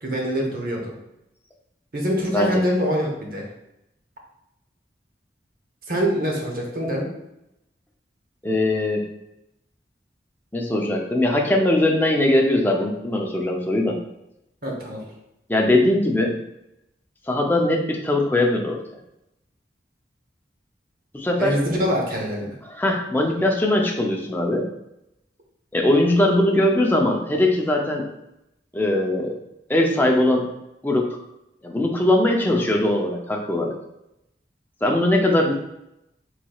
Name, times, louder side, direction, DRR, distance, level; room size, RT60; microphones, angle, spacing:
voice 1, 0.0-0.9 1.9-3.5 5.9-7.1 14.6-15.0 21.4-22.6, equal, 55° right, -1 dB, 1.1 m, -24 dB
voice 2, 8.4-9.0 10.5-14.0 15.5-16.3 17.3-18.8 21.1-21.5 22.7-24.7 25.7-28.1 28.7-29.4 29.7-30.5 30.8-31.2 31.6-33.7 34.8-35.5, left 1 dB, 10° left, 0 dB, 0.5 m, -20 dB
4.6 x 4.0 x 2.3 m, 0.86 s
head